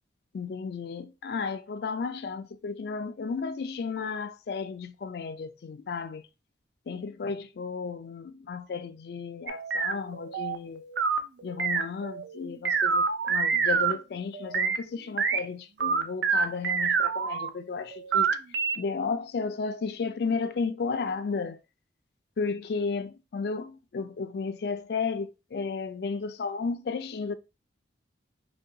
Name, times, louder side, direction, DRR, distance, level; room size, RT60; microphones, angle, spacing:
voice 1, 0.3-6.2 6.9-10.8 11.4-18.3 18.8-21.6 22.4-27.3, left 5 dB, 55° left, 0.3 m, -33 dB
sound 1, 9.5-13.9 14.3-14.8 15.2-15.4 15.8-17.5 17.9-18.8, right 5 dB, 65° right, 0.4 m, -27 dB
5.0 x 2.3 x 2.7 m
head